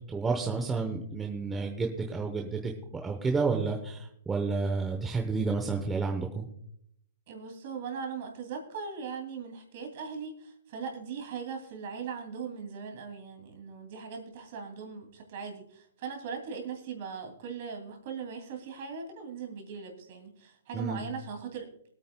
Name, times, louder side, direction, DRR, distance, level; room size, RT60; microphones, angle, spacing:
voice 1, 0.1-6.5 20.7-21.0, right 4 dB, 5° right, 2 dB, 0.8 m, -30 dB
voice 2, 7.3-21.7, right 6 dB, 35° right, 2 dB, 2.5 m, -39 dB
24.5 x 8.8 x 2.2 m, 0.69 s
hypercardioid pair, 175°, 0 cm